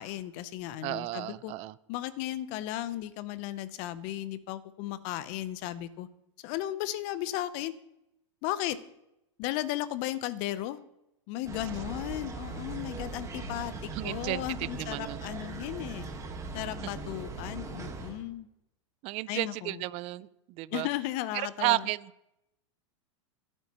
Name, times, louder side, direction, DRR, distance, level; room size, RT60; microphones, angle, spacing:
voice 1, 0.0-1.5 1.9-6.1 6.4-7.7 8.4-8.8 9.4-10.8 11.3-16.1 16.5-18.5 19.3-19.8 20.7-21.8, left 14 dB, 50° left, 14 dB, 0.8 m, -35 dB
voice 2, 0.8-1.7 13.7-15.2 19.0-20.9 21.3-22.1, right 18 dB, 40° right, 18 dB, 0.5 m, -33 dB
sound 1, 11.4-18.2, right 3 dB, 20° right, 1.6 m, -40 dB
26.5 x 9.0 x 3.1 m, 0.86 s
hypercardioid pair, 115°, 16 cm